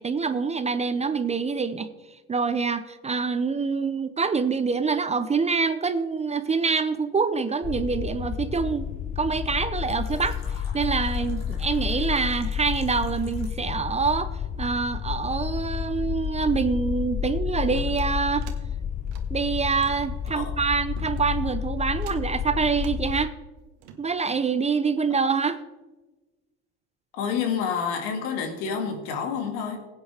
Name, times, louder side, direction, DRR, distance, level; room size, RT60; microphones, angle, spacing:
voice 1, 0.0-1.9 2.3-10.4 10.7-14.3 14.6-18.5 19.3-23.3 24.0-25.6, right 5 dB, 20° right, 0.6 m, -25 dB
sound 1, 7.6-23.3, left 8 dB, 20° left, 0.4 m, -31 dB
Fill (with liquid), 9.9-13.7, left 4 dB, 50° left, 3.0 m, -50 dB
sound 2, 17.7-18.6 19.0-20.4 21.0-21.5 21.9-22.4 22.8-23.0 23.6-24.5, right 8 dB, 70° right, 1.4 m, -46 dB
voice 2, 27.1-29.8, left 6 dB, 75° left, 2.1 m, -28 dB
16.5 x 9.1 x 3.4 m
supercardioid pair, 90°, 35 cm